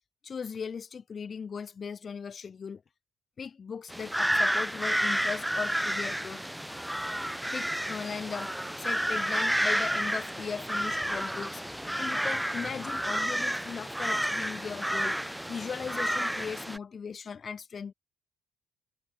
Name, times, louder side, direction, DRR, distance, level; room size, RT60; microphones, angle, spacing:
voice 1, 0.2-2.8 3.4-6.5 7.5-8.5 8.8-11.6 11.9-15.2 15.5-17.9, left 6 dB, 35° left, 2.7 m, -38 dB
sound 1, 3.9-16.8, equal, ahead, 0.3 m, -30 dB
cardioid pair, 130°, 0 cm